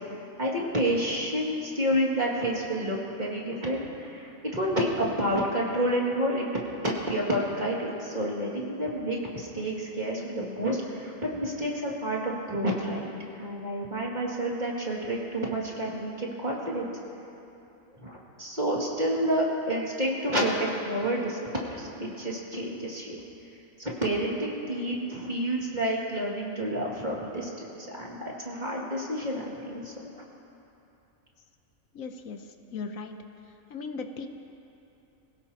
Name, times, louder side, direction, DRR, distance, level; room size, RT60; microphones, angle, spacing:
voice 1, 0.4-13.1 13.4-16.9 18.0-23.2 23.8-27.5 27.9-29.9, right 1 dB, 30° right, -4 dB, 2.4 m, -29 dB
voice 2, 31.9-32.4 32.7-33.2 33.7-34.3, left 4 dB, 75° left, 6 dB, 1.2 m, -37 dB
24.5 x 16.5 x 2.9 m, 2.8 s
omnidirectional pair, 1.4 m